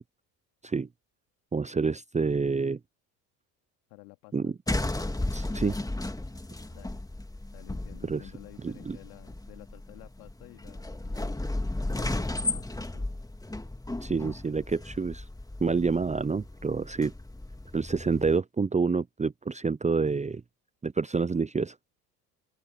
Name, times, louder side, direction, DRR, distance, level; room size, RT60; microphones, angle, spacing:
voice 1, 1.5-2.8 4.3-4.5 5.3-5.8 8.0-8.2 8.6-9.0 14.0-15.2 15.6-17.1 17.7-20.4 20.8-21.7, right 4 dB, 15° right, 0.8 m, -28 dB
voice 2, 3.9-4.5 6.7-7.0 7.5-11.4 11.9-13.3, left 30 dB, 70° left, 3.6 m, -52 dB
sound 1, 4.7-18.4, left 2 dB, 5° left, 2.2 m, -35 dB
open air
hypercardioid pair, 65°, 48 cm